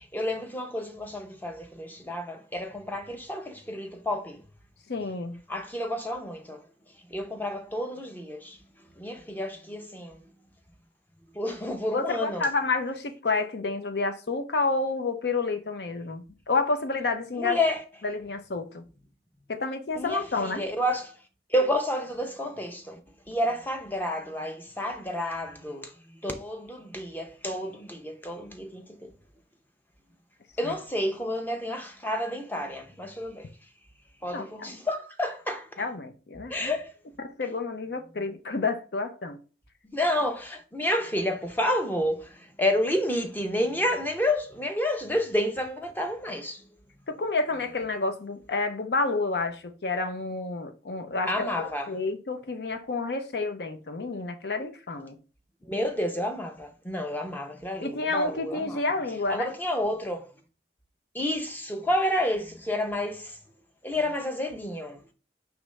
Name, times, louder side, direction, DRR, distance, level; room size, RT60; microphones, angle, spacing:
voice 1, 0.0-4.4 5.5-6.6 7.1-8.6 9.0-10.2 11.3-12.5 17.3-17.8 20.0-21.1 21.5-23.0 23.3-29.1 30.6-33.5 34.2-35.9 36.5-36.9 39.8-46.7 51.2-51.9 55.7-58.8 59.3-60.2 61.1-63.4 63.8-65.0, left 1 dB, 10° left, 0.6 m, -30 dB
voice 2, 4.9-5.4 11.9-17.6 18.0-18.8 19.5-20.7 30.6-30.7 34.3-34.8 35.8-36.8 37.2-39.4 47.1-55.2 57.8-59.5, left 3 dB, 70° left, 0.6 m, -29 dB
5.0 x 3.0 x 3.2 m
head